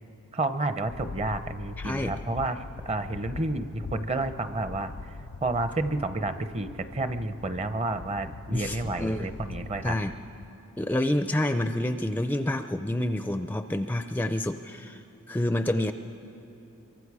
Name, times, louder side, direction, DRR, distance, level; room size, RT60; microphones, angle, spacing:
voice 1, 0.3-5.1 5.4-9.9, right 2 dB, 30° right, 10 dB, 0.7 m, -30 dB
sound 1, 0.9-10.5, left 4 dB, 75° left, 0.5 m, -42 dB
voice 2, 1.8-2.1 8.5-9.3 9.8-10.1 10.8-15.0 15.3-15.9, left 1 dB, 10° left, 8 dB, 0.4 m, -28 dB
24.5 x 23.0 x 4.8 m, 2.9 s
head